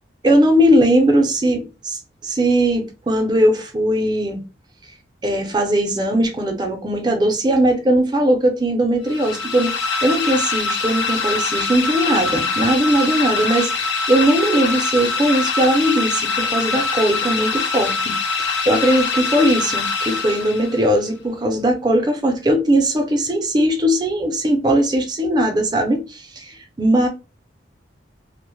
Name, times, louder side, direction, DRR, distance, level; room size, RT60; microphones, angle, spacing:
voice 1, 0.2-4.4 5.2-27.1, right 1 dB, 20° right, 0.4 m, -19 dB
sound 1, 9.1-20.9, left 4 dB, 70° left, 0.6 m, -23 dB
2.1 x 2.1 x 2.9 m
head